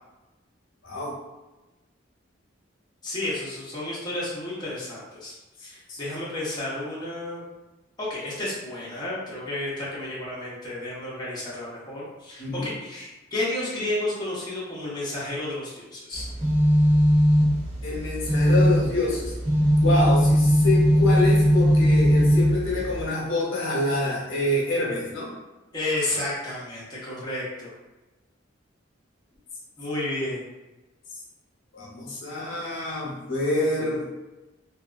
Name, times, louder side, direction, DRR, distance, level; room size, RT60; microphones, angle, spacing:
voice 1, 0.8-1.1 5.6-6.0 12.4-12.7 17.8-19.3 19.8-25.3 31.7-34.1, left 2 dB, 80° left, -4 dB, 0.8 m, -27 dB
voice 2, 3.0-5.4 5.6-7.5 8.0-16.3 25.7-27.7 29.8-30.4, left 1 dB, 20° left, -8 dB, 0.7 m, -31 dB
sound 1, 16.1-23.0, equal, 10° right, 0.9 m, -19 dB
2.7 x 2.3 x 2.4 m, 1.1 s
head